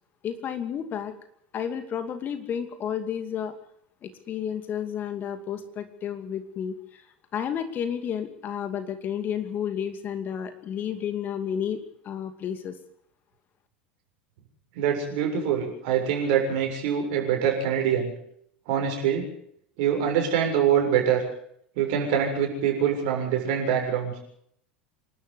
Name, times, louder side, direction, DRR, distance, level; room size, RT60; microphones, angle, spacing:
voice 1, 0.2-1.1 1.5-3.5 4.0-7.1 7.3-11.8 12.0-12.8, left 8 dB, 35° left, 9 dB, 2.5 m, -31 dB
voice 2, 14.8-18.1 18.7-19.3 19.8-21.2 21.8-24.2, right 8 dB, 55° right, 2 dB, 7.1 m, -24 dB
27.0 x 12.5 x 8.3 m, 0.68 s
figure-of-eight pair, 75°, 5 cm